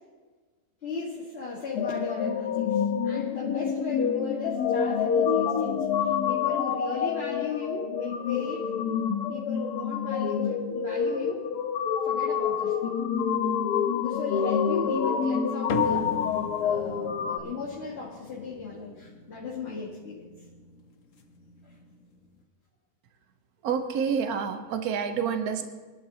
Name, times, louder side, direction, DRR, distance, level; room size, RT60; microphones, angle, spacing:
voice 1, 0.8-8.7 9.3-11.5 12.0-13.4 14.0-16.2 16.6-20.2 21.6-21.7, left 4 dB, 40° left, -4 dB, 2.0 m, -37 dB
sound 1, 1.8-17.4, left 7 dB, 85° left, 1.3 m, -27 dB
sound 2, 15.7-22.4, left 2 dB, 55° left, 1.3 m, -39 dB
voice 2, 23.6-25.7, right 7 dB, 75° right, 7 dB, 1.4 m, -28 dB
24.0 x 12.0 x 2.9 m, 1.4 s
omnidirectional pair, 1.7 m